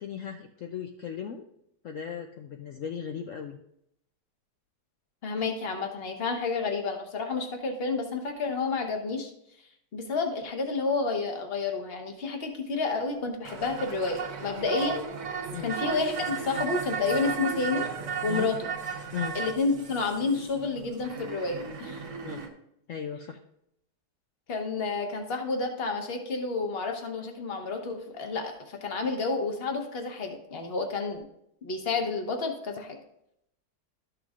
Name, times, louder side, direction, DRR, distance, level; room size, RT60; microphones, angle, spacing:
voice 1, 0.0-1.4 1.8-3.6 15.5-15.7 18.3-18.5 19.1-19.4 22.2-22.4 22.9-23.4, left 8 dB, 75° left, 4 dB, 0.7 m, -36 dB
voice 2, 5.2-9.3 9.9-15.0 15.6-17.9 18.2-18.7 19.3-22.0 24.5-31.2 31.6-33.0, left 4 dB, 40° left, 4 dB, 1.1 m, -30 dB
sound 1, 13.4-22.5, right 6 dB, 65° right, 1.6 m, -35 dB
12.5 x 6.3 x 2.5 m, 0.76 s
omnidirectional pair, 1.9 m